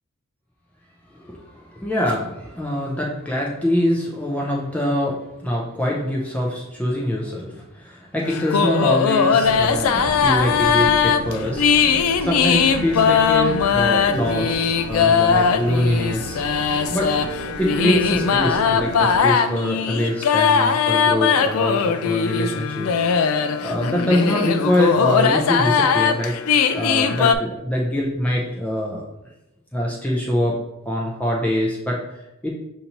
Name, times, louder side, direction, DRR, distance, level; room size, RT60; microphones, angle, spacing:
voice 1, 1.1-16.4 16.9-17.1 17.6-22.9 23.6-26.3 26.7-29.0 29.7-30.6 30.8-32.5, left 1 dB, 5° left, -3 dB, 0.5 m, -24 dB
sound 1, 8.2-27.3, left 6 dB, 80° left, 0.4 m, -20 dB
sound 2, 9.4-19.2, right 4 dB, 60° right, 0.3 m, -34 dB
6.5 x 2.7 x 2.9 m, 0.91 s
head